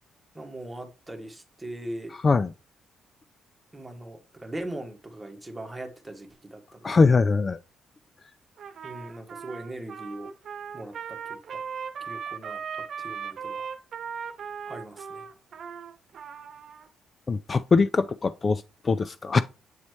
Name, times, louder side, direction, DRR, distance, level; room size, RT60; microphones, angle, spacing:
voice 1, 0.3-2.2 3.7-7.1 8.8-10.3 10.7-11.6 12.0-12.6 13.0-13.7 14.7-15.3, right 1 dB, 10° right, 1.6 m, -40 dB
voice 2, 6.8-7.6 17.3-19.4, left 4 dB, 35° left, 0.3 m, -22 dB
Trumpet, 8.6-16.9, right 7 dB, 60° right, 1.0 m, -38 dB
8.0 x 4.2 x 3.2 m
cardioid pair, 90°, 0 cm